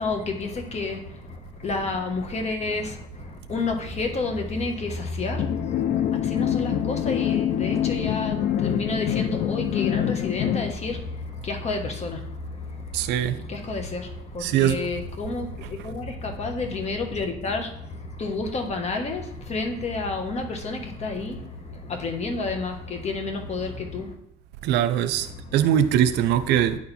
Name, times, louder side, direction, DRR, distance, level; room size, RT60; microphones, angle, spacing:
voice 1, 0.0-24.1 25.2-25.5, left 3 dB, 40° left, 1.3 m, -30 dB
sound 1, 5.4-10.7, left 10 dB, 65° left, 0.5 m, -25 dB
voice 2, 12.9-13.4 14.4-14.8 24.6-26.8, right 10 dB, 85° right, 0.6 m, -22 dB
9.4 x 4.5 x 4.2 m
cardioid pair, 110°, 17 cm